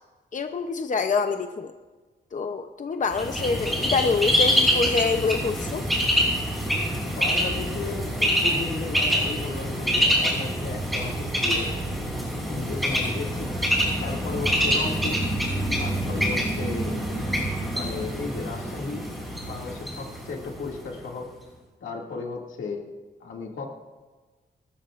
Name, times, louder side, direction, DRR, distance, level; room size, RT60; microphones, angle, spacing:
voice 1, 0.3-1.7 2.3-5.8, left 4 dB, 40° left, 7 dB, 0.7 m, -26 dB
Bird, 3.1-20.9, equal, ahead, 5.3 m, -26 dB
voice 2, 7.0-11.7 12.4-13.5 14.0-15.2 15.8-17.3 17.6-19.0 19.4-21.3 21.8-22.9 23.2-23.7, left 4 dB, 85° left, -1 dB, 2.4 m, -35 dB
25.0 x 13.0 x 2.5 m, 1.3 s
cardioid pair, 90°, 19 cm